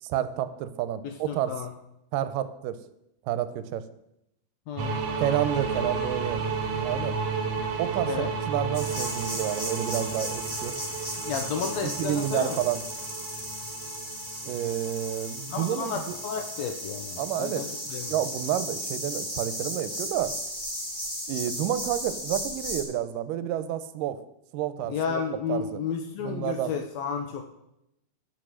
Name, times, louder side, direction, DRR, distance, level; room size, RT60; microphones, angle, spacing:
voice 1, 0.0-1.5 2.1-2.8 3.3-3.8 5.2-6.4 6.8-7.2 7.8-10.7 11.6-12.8 14.5-16.5 17.2-20.3 21.3-24.2 24.5-25.2 25.5-25.8 26.2-26.7, right 11 dB, 85° right, 12 dB, 2.2 m, -30 dB
voice 2, 1.0-1.7 4.7-5.0 8.1-8.3 11.2-12.6 15.5-18.1 24.9-27.4, left 6 dB, 85° left, 5 dB, 1.5 m, -32 dB
sound 1, 4.8-17.3, right 4 dB, 65° right, 1.7 m, -33 dB
sound 2, 5.2-11.5, left 1 dB, 35° left, 5.2 m, -48 dB
sound 3, 8.7-22.8, equal, 15° left, 1.8 m, -35 dB
8.7 x 5.9 x 6.2 m, 0.82 s
omnidirectional pair, 3.9 m